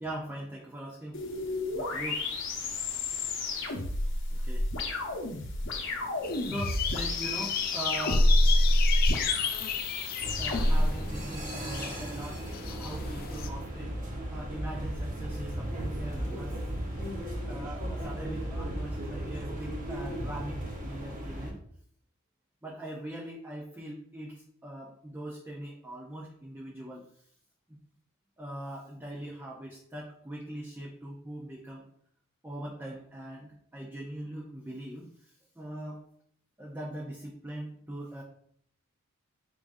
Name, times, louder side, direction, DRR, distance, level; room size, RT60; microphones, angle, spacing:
voice 1, 0.0-1.2 1.7-2.3 4.3-4.7 5.8-5.9 6.3-8.3 10.4-14.0 14.3-16.6 17.5-21.6 22.6-27.0 27.7-27.8 28.4-31.9 32.4-35.1 35.6-36.0 36.6-38.2, right 1 dB, 10° right, -4 dB, 0.6 m, -41 dB
sound 1, 1.1-10.9, left 1 dB, 60° left, 0.8 m, -28 dB
sound 2, 6.2-13.5, left 7 dB, 45° left, 0.4 m, -35 dB
sound 3, 10.2-21.5, right 1 dB, 40° right, 0.9 m, -36 dB
4.7 x 3.7 x 2.6 m, 0.65 s
head